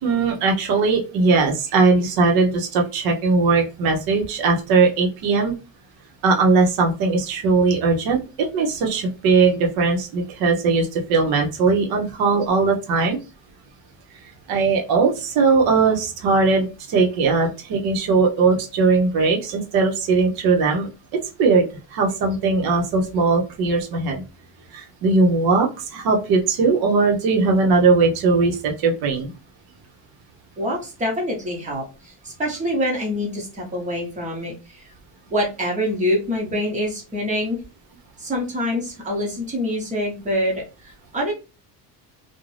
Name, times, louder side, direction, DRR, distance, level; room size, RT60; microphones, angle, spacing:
voice 1, 0.0-5.5 6.2-13.2 14.5-20.9 21.4-24.2 24.7-29.3, right 4 dB, 55° right, 1 dB, 0.8 m, -19 dB
voice 2, 30.6-34.9 35.3-37.6 38.2-41.3, equal, 15° right, -2 dB, 0.8 m, -25 dB
2.5 x 2.1 x 3.1 m, 0.31 s
cardioid pair, 175°, 43 cm